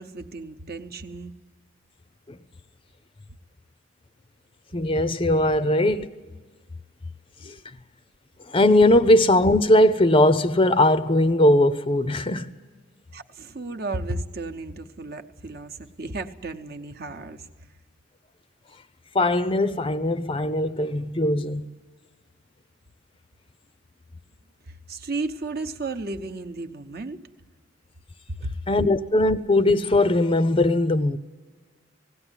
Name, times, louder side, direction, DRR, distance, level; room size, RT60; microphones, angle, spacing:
voice 1, 0.0-1.3 13.1-17.5 24.7-27.2 28.3-28.5, right 2 dB, 50° right, 0.9 m, -34 dB
voice 2, 4.7-6.1 7.4-7.6 8.5-12.5 19.1-21.6 28.7-31.2, left 1 dB, 25° left, 0.5 m, -20 dB
19.0 x 17.0 x 9.8 m
head